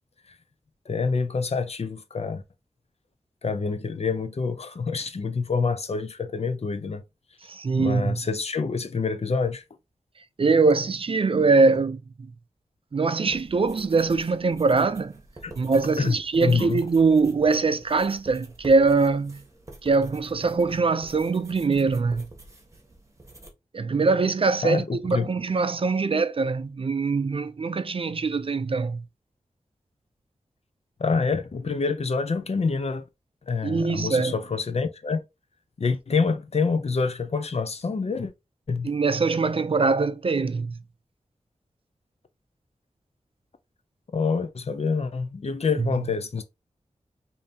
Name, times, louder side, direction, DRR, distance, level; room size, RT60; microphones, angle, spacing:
voice 1, 0.9-2.4 3.4-7.0 7.8-9.6 15.4-15.5 16.0-16.8 24.6-25.3 31.0-33.0 33.5-35.2 35.8-38.3 38.7-38.9 44.1-46.4, left 4 dB, 60° left, 0.6 m, -26 dB
voice 2, 7.5-8.2 10.4-12.3 12.9-15.2 15.6-19.4 19.8-22.3 23.7-29.0 33.6-34.4 38.8-40.8 45.8-45.9, right 4 dB, 50° right, 0.4 m, -23 dB
sound 1, 13.3-23.5, right 2 dB, 25° right, 1.3 m, -47 dB
5.1 x 2.8 x 2.7 m
wide cardioid pair, 70°, 12 cm